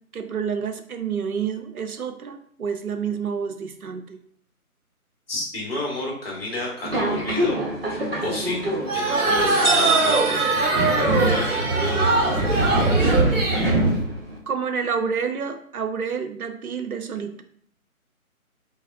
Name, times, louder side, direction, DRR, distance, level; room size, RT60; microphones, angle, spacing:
voice 1, 0.1-4.2 14.5-17.4, right 6 dB, 75° right, 7 dB, 0.6 m, -29 dB
voice 2, 5.3-7.6 8.2-8.6 8.9-10.4 11.0-12.7, left 1 dB, 40° left, -2 dB, 1.3 m, -30 dB
Subway metro underground, 6.8-14.4, right 2 dB, 40° right, 0.9 m, -25 dB
sound 1, 8.9-13.7, right 3 dB, 55° right, 1.2 m, -22 dB
sound 2, 9.5-11.4, right 3 dB, 15° right, 1.0 m, -26 dB
3.9 x 3.2 x 2.6 m, 0.64 s
figure-of-eight pair, 150°, 44 cm